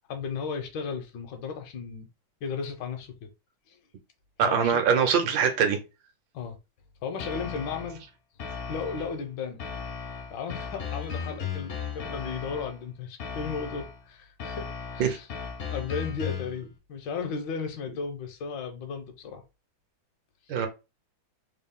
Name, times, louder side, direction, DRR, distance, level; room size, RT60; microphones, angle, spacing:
voice 1, 0.1-2.1 2.4-3.3 3.7-3.8 4.4-4.8 6.3-6.6 7.0-8.0 8.7-9.6 10.3-14.7 14.9-15.3 15.7-19.4 20.5-20.6, left 5 dB, 75° left, 1.4 m, -35 dB
voice 2, 4.4-5.8 15.0-15.2 20.5-20.7, right 7 dB, 75° right, 1.4 m, -23 dB
sound 1, 7.2-8.0 8.4-9.2 9.6-12.8 13.2-14.0 14.4-16.6, left 6 dB, 55° left, 0.7 m, -36 dB
3.7 x 2.3 x 3.6 m
omnidirectional pair, 2.1 m